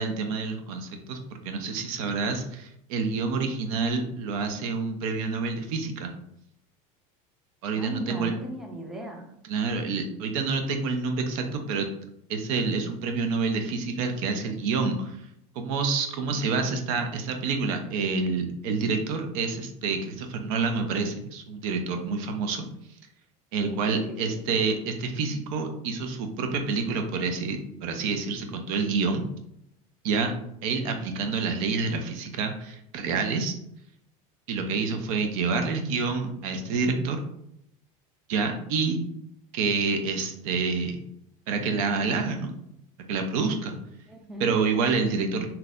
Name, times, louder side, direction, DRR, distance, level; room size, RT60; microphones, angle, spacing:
voice 1, 0.0-6.1 7.6-8.3 9.5-11.9 12.3-15.2 15.6-22.7 23.5-29.2 30.0-30.3 30.6-33.5 34.5-37.2 38.3-39.0 39.5-41.0 41.5-42.5 43.1-43.8 44.4-45.5, right 4 dB, 70° right, 5 dB, 0.6 m, -28 dB
voice 2, 7.8-9.3 16.2-16.9 23.6-24.6 44.1-44.5, equal, 5° right, 1 dB, 0.4 m, -39 dB
3.8 x 2.8 x 2.4 m, 0.76 s
supercardioid pair, 150°, 18 cm